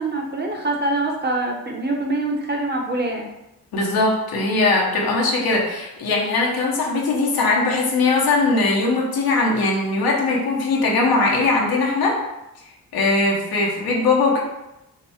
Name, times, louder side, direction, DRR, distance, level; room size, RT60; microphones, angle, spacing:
voice 1, 0.0-3.3, right 2 dB, 30° right, 1 dB, 0.9 m, -24 dB
voice 2, 3.7-12.2 12.9-14.4, left 3 dB, 90° left, -2 dB, 1.1 m, -20 dB
5.3 x 2.2 x 4.2 m, 0.93 s
cardioid pair, 95°, 35 cm